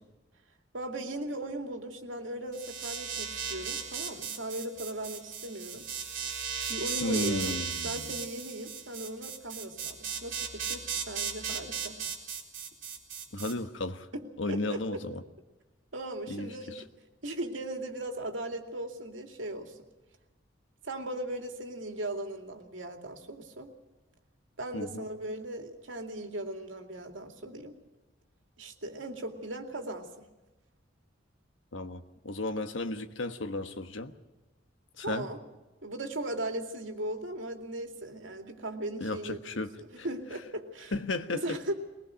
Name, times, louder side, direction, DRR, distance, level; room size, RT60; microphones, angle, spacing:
voice 1, 0.7-5.9 6.7-7.5 7.8-12.0 14.1-14.8 15.9-16.9 17.2-19.8 20.8-23.7 24.6-27.7 28.6-30.2 35.0-35.4 35.8-39.4 39.8-40.9 41.3-41.7, right 1 dB, 85° right, 4 dB, 2.5 m, -38 dB
sound 1, 2.5-13.5, right 6 dB, 50° right, 4.0 m, -36 dB
voice 2, 7.0-8.1 13.3-14.1 14.4-15.1 16.3-16.8 24.7-25.0 31.7-34.1 35.0-35.3 39.0-40.0 40.9-41.6, left 2 dB, 80° left, 9 dB, 1.3 m, -34 dB
21.5 x 20.0 x 6.4 m, 1.1 s
head